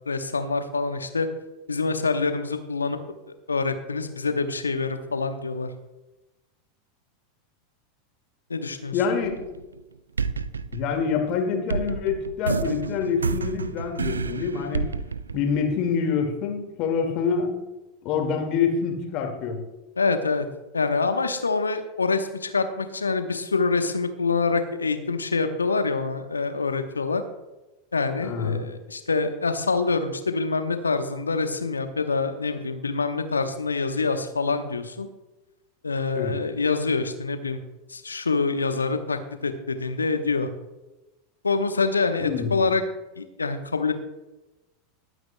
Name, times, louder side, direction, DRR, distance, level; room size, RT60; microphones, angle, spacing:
voice 1, 0.1-1.3 1.7-3.0 3.3-5.7 8.5-9.0 20.0-20.5 20.7-27.2 27.9-35.1 35.8-37.6 37.9-40.5 41.4-42.8 43.2-43.9, left 4 dB, 80° left, 9 dB, 1.0 m, -26 dB
voice 2, 8.9-9.4 10.7-14.9 15.3-17.5 18.0-19.6 28.2-28.7 36.2-36.4 42.2-42.7, left 6 dB, 45° left, 4 dB, 2.0 m, -26 dB
sound 1, 9.2-9.8 10.2-16.0, right 5 dB, 80° right, 0.4 m, -30 dB
20.5 x 9.2 x 2.2 m, 1.0 s
figure-of-eight pair, 85°, 0 cm